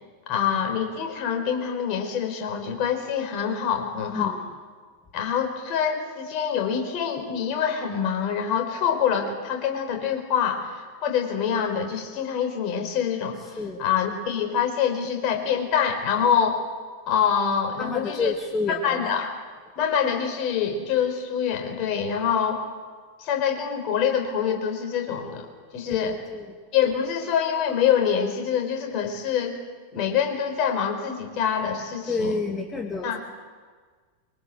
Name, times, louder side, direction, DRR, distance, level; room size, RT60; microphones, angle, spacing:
voice 1, 0.3-4.4 5.1-16.6 17.1-18.3 18.8-19.3 19.8-22.6 23.2-26.2 26.7-29.6 29.9-32.3 33.0-33.2, left 8 dB, 40° left, 4 dB, 4.8 m, -25 dB
voice 2, 4.1-4.5 13.4-13.9 17.8-19.2 25.8-26.5 32.1-33.2, left 3 dB, 15° left, 3 dB, 2.0 m, -30 dB
24.5 x 24.0 x 7.9 m, 1.5 s
figure-of-eight pair, 90°, 0 cm